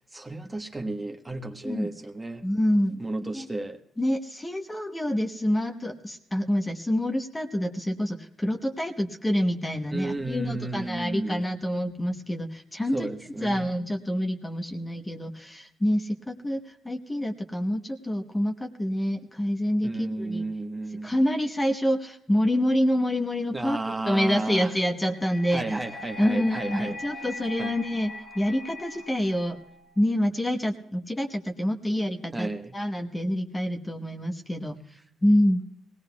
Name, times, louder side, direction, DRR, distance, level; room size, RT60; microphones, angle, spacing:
voice 1, 0.0-2.4 3.0-3.8 9.9-11.4 12.9-13.7 19.8-21.1 23.5-24.7 25.5-27.3 27.6-27.7 32.3-32.7, right 2 dB, 15° right, 5 dB, 1.2 m, -33 dB
voice 2, 2.4-3.0 3.3-3.5 4.0-13.1 13.4-20.5 21.0-23.8 24.1-25.7 26.2-29.6 30.0-34.8 35.2-35.6, equal, 15° left, 5 dB, 1.0 m, -27 dB
sound 1, 25.0-30.0, left 2 dB, 50° left, 1.5 m, -41 dB
21.0 x 18.0 x 2.3 m, 0.72 s
cardioid pair, 90°, 0 cm